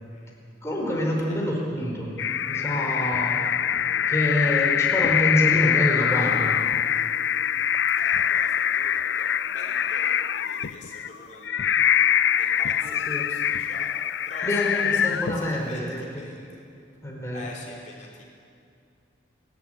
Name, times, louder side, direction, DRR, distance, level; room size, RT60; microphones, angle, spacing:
voice 1, 0.6-2.1 2.4-3.6 4.1-6.6 12.8-13.3 14.4-16.3 17.0-17.5, left 1 dB, 15° left, -2 dB, 4.5 m, -27 dB
sound 1, 2.2-15.7, left 9 dB, 65° left, 0.5 m, -24 dB
voice 2, 7.9-11.8 12.3-14.9 15.3-16.6 17.3-18.2, left 2 dB, 40° left, -3 dB, 4.5 m, -44 dB
29.0 x 12.0 x 9.3 m, 2.4 s
head